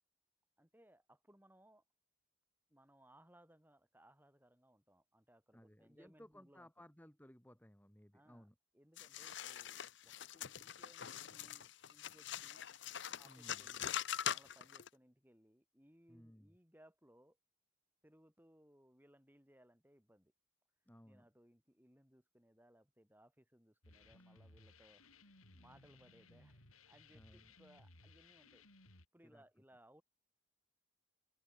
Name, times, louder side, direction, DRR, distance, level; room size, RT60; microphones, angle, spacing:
voice 1, 0.6-1.8 2.7-6.8 8.1-8.5 8.7-12.6 13.2-14.0 14.3-17.4 18.0-20.3 21.1-28.6 29.1-30.0, right 1 dB, 10° right, 7.2 m, -67 dB
voice 2, 5.5-8.6 13.2-13.7 16.1-16.5 20.9-21.3 24.1-24.3 27.1-27.5 29.2-29.4, equal, 10° left, 1.9 m, -61 dB
sound 1, 9.0-14.9, left 9 dB, 55° left, 0.8 m, -43 dB
sound 2, 23.8-29.1, left 2 dB, 85° left, 7.6 m, -63 dB
head